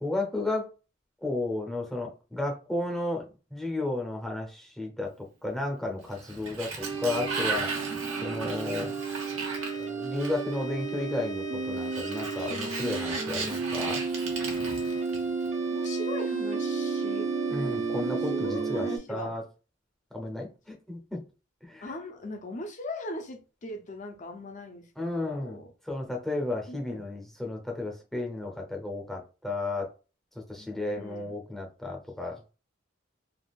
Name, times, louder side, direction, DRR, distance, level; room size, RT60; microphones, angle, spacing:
voice 1, 0.0-0.7 1.2-6.7 7.0-7.7 8.2-8.9 9.7-14.0 17.5-19.4 20.1-21.2 21.6-21.8 25.0-29.9 30.5-32.5, left 2 dB, ahead, 0.6 m, -33 dB
Sliding door, 6.0-10.6 11.8-15.5, right 4 dB, 90° right, 1.1 m, -36 dB
sound 1, 6.8-19.0, right 4 dB, 35° right, 0.6 m, -32 dB
voice 2, 15.7-17.3 17.9-19.4 21.8-25.7 26.7-27.0 30.6-31.3, left 1 dB, 40° left, 0.5 m, -40 dB
3.4 x 2.3 x 2.3 m
head